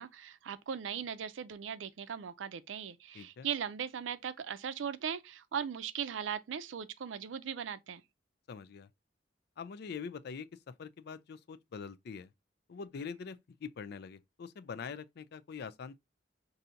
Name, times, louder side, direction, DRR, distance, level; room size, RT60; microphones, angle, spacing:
voice 1, 0.0-8.0, right 7 dB, 90° right, 0.4 m, -39 dB
voice 2, 3.1-3.5 8.5-8.9 9.6-10.5 10.8-12.3 12.7-16.0, left 6 dB, 60° left, 0.4 m, -44 dB
5.6 x 2.7 x 2.6 m
head